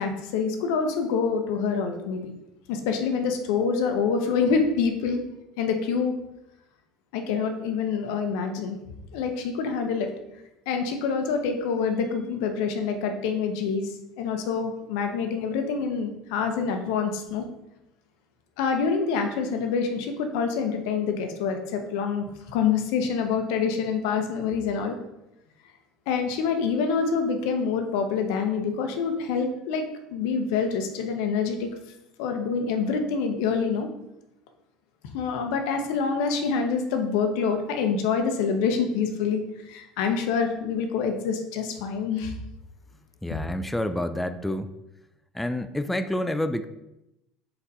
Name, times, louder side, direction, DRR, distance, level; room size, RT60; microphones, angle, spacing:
voice 1, 0.0-2.3 2.7-5.2 5.6-6.1 7.1-8.8 9.1-10.1 10.7-13.9 14.2-17.5 18.6-25.0 26.1-29.8 30.1-31.7 32.2-33.9 35.1-42.3 43.3-43.4, left 5 dB, 75° left, 5 dB, 0.7 m, -26 dB
voice 2, 43.2-44.7 45.3-46.7, left 1 dB, 5° left, 9 dB, 0.3 m, -28 dB
4.3 x 4.1 x 2.7 m, 0.89 s
supercardioid pair, 85°, 2 cm